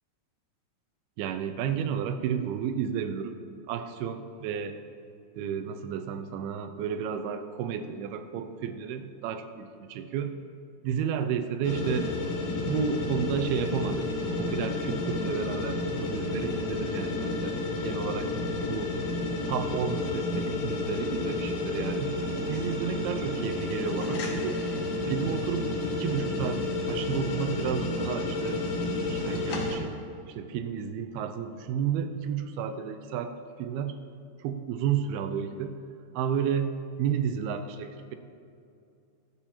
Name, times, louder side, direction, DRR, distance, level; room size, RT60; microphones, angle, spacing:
voice 1, 1.2-3.4 3.7-4.8 5.4-10.3 10.8-12.1 12.7-14.1 14.4-17.6 17.8-18.3 18.7-18.9 19.5-22.1 22.5-24.6 25.1-26.6 26.9-30.0 30.3-33.3 33.6-34.0 34.4-35.7 36.1-36.7 37.0-38.2, right 8 dB, 85° right, 8 dB, 2.5 m, -32 dB
sound 1, 11.6-29.8, left 2 dB, 65° left, 1.7 m, -31 dB
22.5 x 8.5 x 2.9 m, 2.5 s
omnidirectional pair, 4.6 m